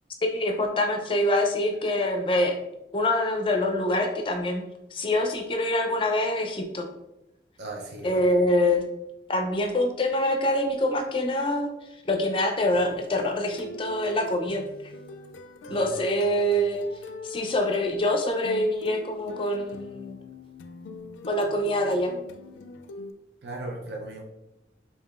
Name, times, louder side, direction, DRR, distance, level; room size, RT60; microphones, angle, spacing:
voice 1, 0.2-2.6 2.9-6.9 8.0-8.8 9.3-11.7 12.1-14.9 15.7-16.8 17.2-20.2 21.3-22.1, left 1 dB, 30° left, 4 dB, 0.4 m, -25 dB
voice 2, 7.6-8.4 15.7-16.0 23.4-24.2, right 2 dB, 65° right, 0 dB, 0.5 m, -37 dB
sound 1, 12.7-23.1, left 1 dB, 90° left, 0.3 m, -43 dB
4.7 x 2.8 x 2.4 m, 0.90 s
head